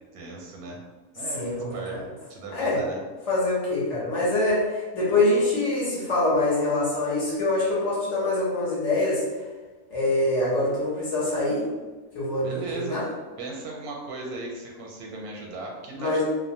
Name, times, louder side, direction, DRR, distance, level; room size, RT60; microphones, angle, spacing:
voice 1, 0.1-0.8 1.1-2.0 2.3-3.0 12.4-13.0 13.4-16.2, right 2 dB, 85° right, -1 dB, 1.1 m, -36 dB
voice 2, 1.3-2.0 2.5-2.8 3.3-9.2 9.9-11.6 12.1-13.1 15.9-16.2, left 2 dB, 55° left, -7 dB, 1.2 m, -24 dB
2.7 x 2.1 x 2.6 m, 1.3 s
omnidirectional pair, 1.5 m